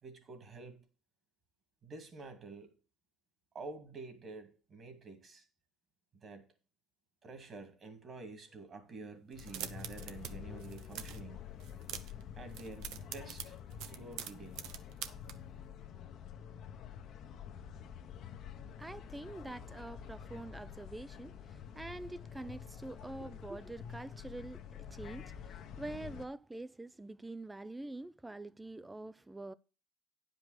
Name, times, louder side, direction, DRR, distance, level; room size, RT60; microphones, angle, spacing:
voice 1, 0.0-0.9 1.8-2.7 3.5-5.5 6.1-6.5 7.2-11.5 12.3-13.6 13.9-14.6 23.2-23.3, right 3 dB, 35° right, 2.5 m, -49 dB
sound 1, 9.3-26.3, left 8 dB, 60° left, 1.1 m, -48 dB
sound 2, 9.3-10.3 10.6-11.2 11.6-12.2 12.5-15.3, right 10 dB, 75° right, 0.9 m, -44 dB
voice 2, 18.8-29.5, right 2 dB, 10° right, 0.5 m, -46 dB
9.9 x 5.3 x 6.6 m
cardioid pair, 115°, 0 cm